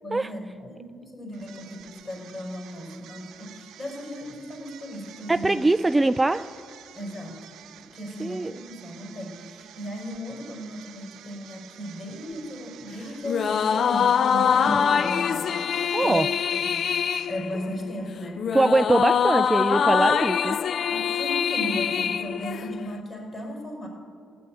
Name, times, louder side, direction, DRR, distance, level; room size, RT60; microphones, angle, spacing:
voice 1, 0.0-5.6 6.9-16.9 17.3-18.5 20.9-23.9, equal, 35° left, 0 dB, 5.2 m, -36 dB
sound 1, 1.3-17.7, right 10 dB, 80° right, 0.6 m, -49 dB
voice 2, 5.3-6.5 8.2-8.5 14.7-15.0 15.9-16.3 18.5-20.6, right 2 dB, 15° right, 12 dB, 0.3 m, -22 dB
sound 2, 13.2-23.0, left 7 dB, 55° left, 0.4 m, -24 dB
16.0 x 9.8 x 9.0 m, 2.4 s
cardioid pair, 90°, 0 cm